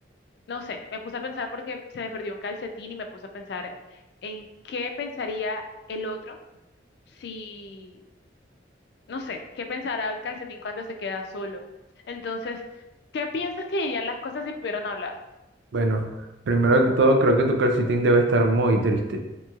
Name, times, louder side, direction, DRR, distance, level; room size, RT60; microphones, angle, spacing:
voice 1, 0.5-3.1 3.3-3.7 4.2-5.6 5.9-6.4 7.2-8.0 9.1-11.6 12.1-12.6 13.1-15.1, left 3 dB, 60° left, 5 dB, 0.3 m, -32 dB
voice 2, 15.7-16.1 16.5-19.2, right 2 dB, 75° right, 4 dB, 0.4 m, -20 dB
3.0 x 2.9 x 2.3 m, 0.97 s
head